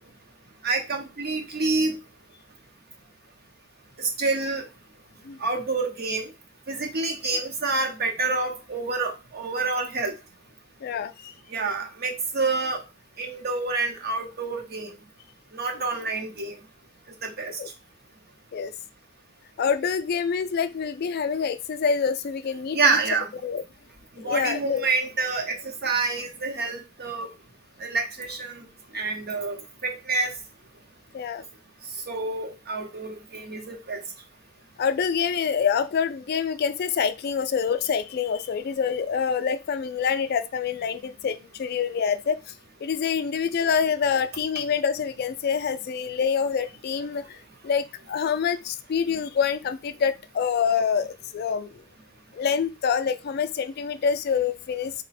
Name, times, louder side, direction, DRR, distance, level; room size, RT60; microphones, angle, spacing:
voice 1, 0.6-2.0 4.0-4.6 5.4-6.3 6.7-10.1 11.5-12.8 13.2-14.9 15.5-16.6 17.2-17.5 22.7-23.3 24.2-27.3 27.8-28.7 28.9-30.3 32.1-34.0, right 3 dB, 50° right, 0.8 m, -27 dB
voice 2, 10.8-11.3 17.6-17.7 18.5-18.7 19.6-22.8 23.4-23.6 24.2-24.9 31.1-31.5 34.8-42.4 42.8-51.8 52.3-54.9, left 6 dB, 50° left, 0.3 m, -26 dB
3.9 x 2.1 x 4.1 m
head